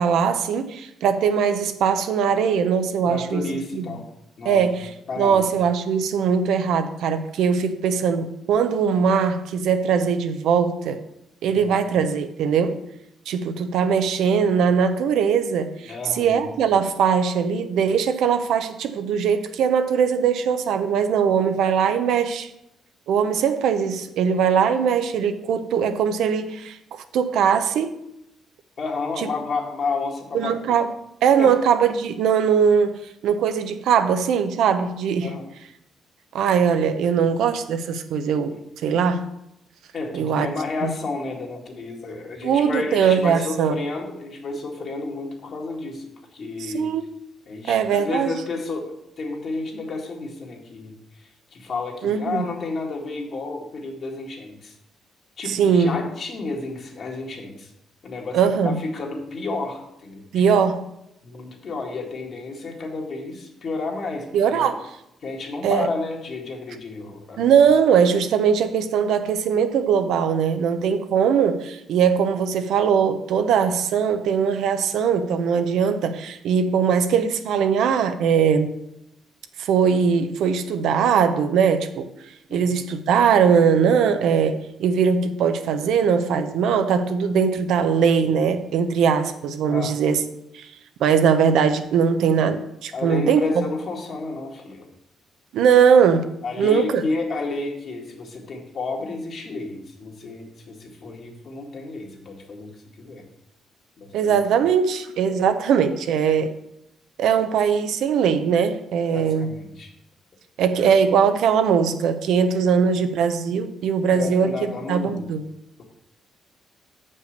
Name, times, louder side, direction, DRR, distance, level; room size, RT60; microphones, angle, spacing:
voice 1, 0.0-3.4 3.7-3.9 4.4-4.9 5.2-11.0 11.4-12.8 13.3-22.5 23.1-26.8 27.1-28.0 30.3-30.9 31.2-35.3 36.3-39.2 40.1-40.5 40.8-40.9 42.4-43.7 46.6-47.0 47.7-48.4 52.0-52.5 55.5-56.0 58.3-58.8 60.3-60.8 64.3-64.8 65.6-65.9 67.4-78.8 79.6-82.1 82.5-90.2 90.5-90.7 91.0-93.7 95.5-96.3 96.6-97.0 104.1-106.5 107.2-109.5 110.6-114.5 114.9-115.4, right 7 dB, 80° right, 9 dB, 0.7 m, -20 dB
voice 2, 3.0-4.1 4.4-4.6 5.1-5.4 11.5-11.8 15.8-16.5 28.8-30.8 31.4-31.6 35.2-35.5 37.1-37.2 39.9-46.9 47.5-54.7 55.4-57.7 58.0-60.2 61.2-64.7 65.2-67.5 82.5-82.7 89.7-89.9 92.9-94.9 96.4-102.7 103.0-103.2 104.0-104.4 109.1-109.9 114.1-115.2, left 3 dB, 55° left, 1 dB, 1.9 m, -31 dB
6.8 x 5.4 x 6.5 m, 0.82 s
cardioid pair, 90°, 0 cm